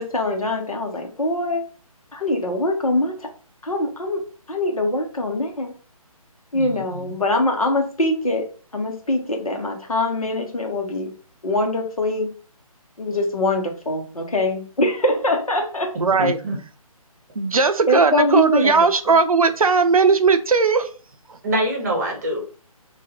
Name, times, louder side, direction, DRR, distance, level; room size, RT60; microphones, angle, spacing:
voice 1, 0.0-1.6 2.1-3.3 3.6-5.7 6.5-8.5 8.7-11.1 11.4-12.3 13.0-15.9 17.9-18.9, left 1 dB, 70° left, 2 dB, 1.0 m, -23 dB
voice 2, 6.5-7.1 15.9-16.6 21.4-22.4, equal, 30° right, 0 dB, 0.9 m, -25 dB
voice 3, 16.0-16.4 17.4-20.9, right 4 dB, 70° right, 9 dB, 0.5 m, -17 dB
2.6 x 2.5 x 3.7 m, 0.38 s
figure-of-eight pair, 145°, 19 cm